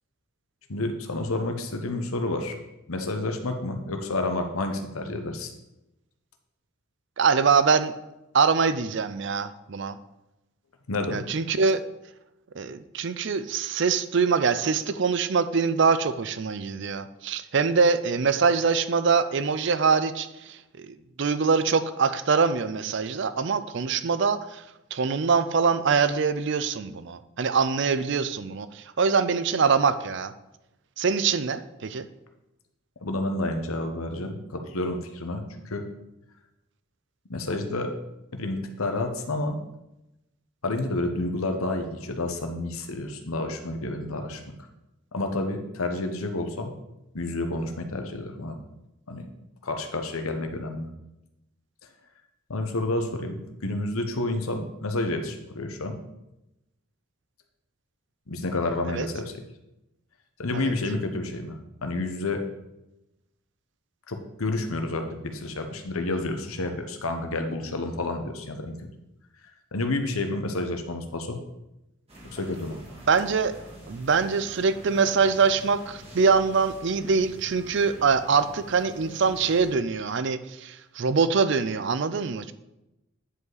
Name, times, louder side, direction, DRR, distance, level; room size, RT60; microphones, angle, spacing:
voice 1, 0.7-2.6 2.9-5.5 10.9-11.2 33.0-35.9 37.3-37.9 38.3-39.6 40.6-44.6 45.1-46.7 47.1-48.6 49.1-49.2 49.6-50.9 52.5-56.0 58.3-59.3 60.4-62.4 64.1-68.7 69.7-71.4 72.2-72.8, left 2 dB, 80° left, 5 dB, 1.0 m, -30 dB
voice 2, 7.2-7.9 8.3-10.0 11.1-11.8 12.6-24.6 24.9-30.3 31.0-32.1 58.9-59.1 60.5-60.7 73.1-73.5 73.9-82.5, right 5 dB, 55° right, 13 dB, 0.5 m, -24 dB
sound 1, 72.1-79.7, equal, 30° right, 1.8 m, -46 dB
9.5 x 5.4 x 4.0 m, 0.92 s
head